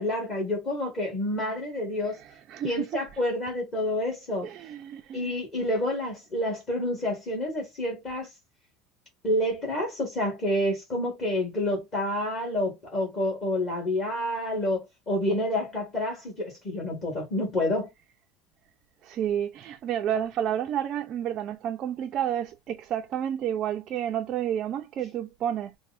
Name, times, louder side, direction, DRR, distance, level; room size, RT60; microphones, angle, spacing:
voice 1, 0.0-2.2 2.6-4.5 5.1-8.3 9.2-17.9, left 1 dB, 30° left, 1.8 m, -28 dB
voice 2, 2.5-3.0 4.4-5.4 19.0-25.7, right 10 dB, 35° right, 0.4 m, -30 dB
4.4 x 2.1 x 2.4 m
cardioid pair, 170°, 0 cm